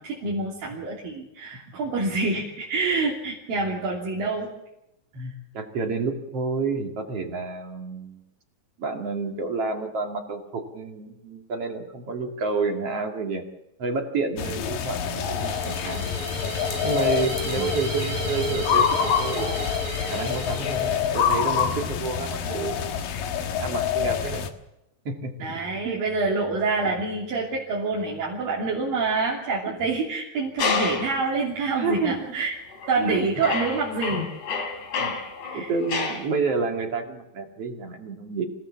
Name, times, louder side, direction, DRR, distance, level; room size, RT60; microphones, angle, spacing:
voice 1, 0.0-4.5 5.2-5.3 17.6-17.7 25.4-32.6 32.9-34.3 35.5-35.7, right 3 dB, 90° right, -4 dB, 4.9 m, -27 dB
voice 2, 5.1-8.2 8.8-13.4 13.8-16.0 16.8-19.7 20.1-23.3 23.6-24.5 25.0-25.5 25.8-26.0 31.7-32.3 33.0-33.3 34.1-34.3 35.0-35.1 35.5-38.4, right 4 dB, 45° right, 3 dB, 3.1 m, -29 dB
sound 1, 14.4-24.5, left 8 dB, 85° left, 3.2 m, -26 dB
sound 2, 15.0-21.4, right 2 dB, 70° right, 5.5 m, -35 dB
sound 3, 30.6-31.2 31.9-32.1 32.7-33.1 33.4-36.3, left 4 dB, 65° left, 4.4 m, -29 dB
26.0 x 16.5 x 7.3 m, 0.88 s
omnidirectional pair, 3.9 m